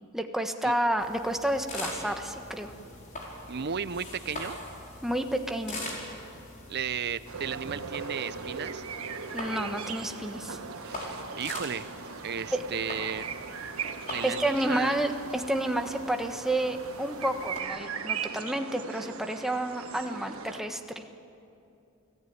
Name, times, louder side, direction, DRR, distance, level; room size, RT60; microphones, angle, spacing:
voice 1, 0.1-2.7 5.0-5.8 9.3-10.6 12.5-12.6 14.2-20.8, right 1 dB, ahead, 5 dB, 1.3 m, -30 dB
sound 1, 1.0-17.6, left 1 dB, 40° left, 4.9 m, -43 dB
voice 2, 3.5-4.6 6.7-8.8 10.8-11.9 12.2-13.3 14.1-15.0, right 7 dB, 55° right, 14 dB, 0.7 m, -34 dB
sound 2, 7.3-20.6, right 6 dB, 90° right, 1.5 m, -39 dB
29.0 x 17.5 x 9.4 m, 2.7 s
head